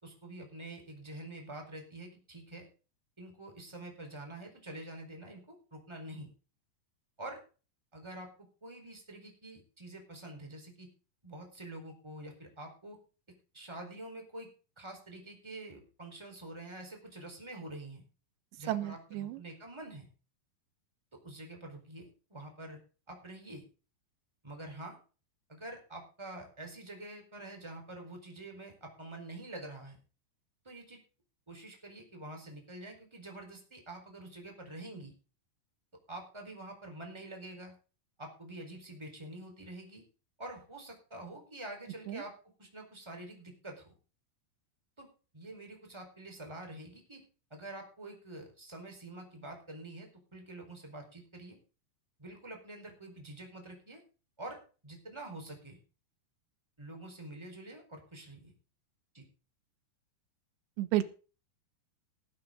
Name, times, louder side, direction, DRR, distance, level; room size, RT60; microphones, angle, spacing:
voice 1, 0.0-2.7 3.2-6.3 7.2-7.4 7.9-8.3 8.6-10.9 11.2-13.0 13.5-14.5 14.8-18.0 18.6-20.1 21.1-22.8 23.1-23.6 24.4-25.0 25.5-30.0 30.6-31.0 31.5-35.1 36.1-37.7 38.2-40.0 40.4-42.3 42.6-43.9 45.0-45.1 45.3-47.2 47.5-51.6 52.2-54.0 54.4-55.8 56.8-58.5 59.1-59.3, right 1 dB, 5° right, 3 dB, 3.9 m, -46 dB
voice 2, 18.7-19.4 42.1-42.2 60.8-61.0, right 14 dB, 90° right, 12 dB, 3.3 m, -32 dB
19.5 x 9.3 x 3.9 m, 0.35 s
omnidirectional pair, 5.0 m